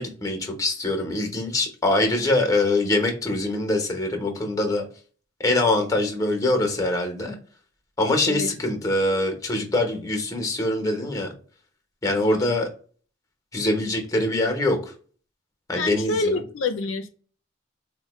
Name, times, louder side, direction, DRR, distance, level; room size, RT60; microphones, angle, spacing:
voice 1, 0.0-4.8 5.4-7.4 8.0-11.3 12.0-12.7 13.5-14.9 15.7-16.4, left 2 dB, 15° left, 0.8 m, -23 dB
voice 2, 12.1-12.6 15.8-17.1, left 3 dB, 85° left, 0.5 m, -27 dB
4.2 x 2.1 x 3.0 m
head